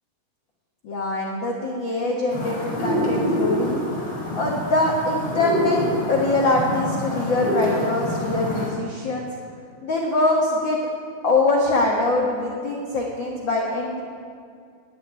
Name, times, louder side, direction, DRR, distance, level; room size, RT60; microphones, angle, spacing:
voice 1, 0.8-3.8 4.3-5.8 6.1-9.3 9.8-10.8 11.2-14.0, left 2 dB, 80° left, -1 dB, 1.0 m, -23 dB
sound 1, 2.3-8.7, equal, 50° left, 4.4 m, -26 dB
11.0 x 8.5 x 9.4 m, 2.3 s
omnidirectional pair, 4.4 m